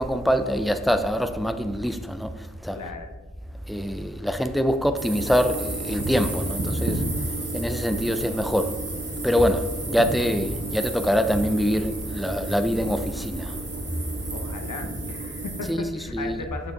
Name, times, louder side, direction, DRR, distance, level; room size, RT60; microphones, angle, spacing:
voice 1, 0.0-2.3 2.6-2.8 3.7-7.0 7.5-8.8 9.2-13.5 15.7-15.8 16.1-16.4, equal, ahead, 0.5 m, -24 dB
voice 2, 2.7-3.1 14.3-16.7, left 3 dB, 80° left, 1.0 m, -36 dB
sound 1, 5.0-15.7, right 2 dB, 50° right, 1.7 m, -32 dB
6.8 x 5.3 x 3.9 m
cardioid pair, 40°, 31 cm